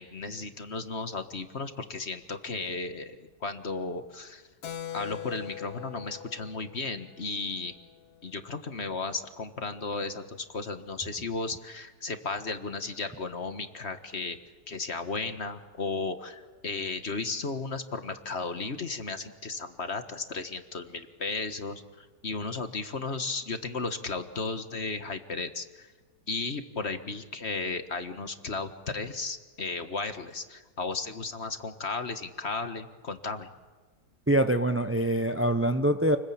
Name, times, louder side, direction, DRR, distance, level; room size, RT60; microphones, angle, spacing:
voice 1, 0.0-4.4 4.9-7.7 8.2-14.4 14.7-25.9 26.3-33.5, left 3 dB, 40° left, 8 dB, 1.7 m, -34 dB
Keyboard (musical), 4.6-8.7, left 11 dB, 65° left, 1.6 m, -43 dB
voice 2, 34.3-36.2, right 1 dB, 15° right, 9 dB, 0.5 m, -24 dB
29.5 x 21.0 x 8.8 m, 1.4 s
omnidirectional pair, 1.8 m